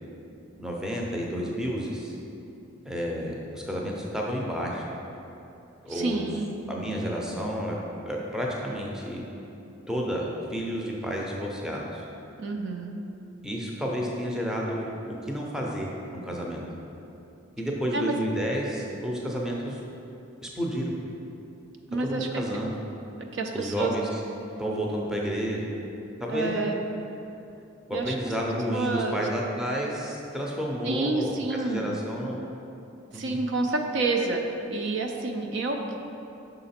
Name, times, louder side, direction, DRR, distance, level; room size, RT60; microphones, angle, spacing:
voice 1, 0.6-2.1 2.9-4.9 5.8-6.3 6.7-7.8 8.0-9.2 9.9-12.0 13.4-16.6 17.6-19.8 20.4-20.9 22.0-22.8 23.5-24.2 24.6-25.7 26.2-26.7 27.9-31.4 31.6-32.4 33.1-33.4, equal, 5° right, -2 dB, 0.5 m, -30 dB
voice 2, 5.9-6.5 12.4-13.0 17.9-18.2 21.9-22.4 23.3-23.9 26.3-26.8 27.9-28.1 28.7-29.2 30.8-32.0 33.1-34.4 34.7-36.0, right 3 dB, 65° right, 3 dB, 0.4 m, -29 dB
5.8 x 3.9 x 4.3 m, 2.8 s
head